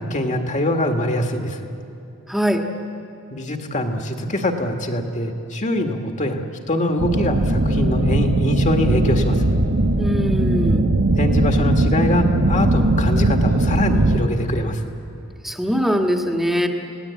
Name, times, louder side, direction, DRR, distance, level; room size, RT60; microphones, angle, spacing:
voice 1, 0.0-1.7 3.3-9.4 11.2-14.8, left 1 dB, 35° left, 4 dB, 1.9 m, -23 dB
voice 2, 2.3-2.6 10.0-10.9 15.4-16.7, equal, ahead, 2 dB, 1.6 m, -21 dB
sound 1, 7.0-14.2, right 1 dB, 65° right, 1.4 m, -19 dB
29.0 x 18.5 x 8.5 m, 2.7 s
head